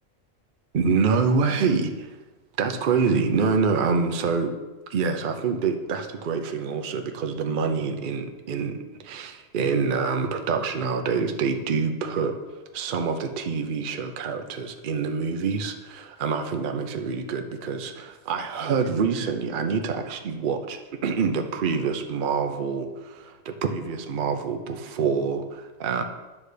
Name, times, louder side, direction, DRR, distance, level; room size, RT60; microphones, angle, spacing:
voice 1, 0.7-2.2 2.6-4.5 4.9-26.0, right 5 dB, 50° right, 5 dB, 0.7 m, -26 dB
9.9 x 3.3 x 6.6 m, 1.2 s
omnidirectional pair, 1.3 m